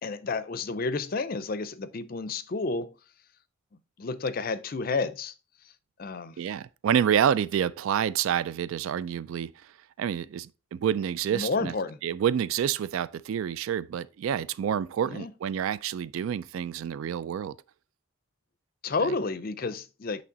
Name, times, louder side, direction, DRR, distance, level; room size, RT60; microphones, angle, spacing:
voice 1, 0.0-2.9 4.0-5.3 6.0-6.4 11.3-12.0 15.1-15.3 18.8-20.2, left 3 dB, 45° left, 0.5 m, -31 dB
voice 2, 6.4-9.5 10.0-11.7 12.0-17.6 19.0-19.1, right 9 dB, 80° right, 0.3 m, -28 dB
8.6 x 3.2 x 3.9 m
head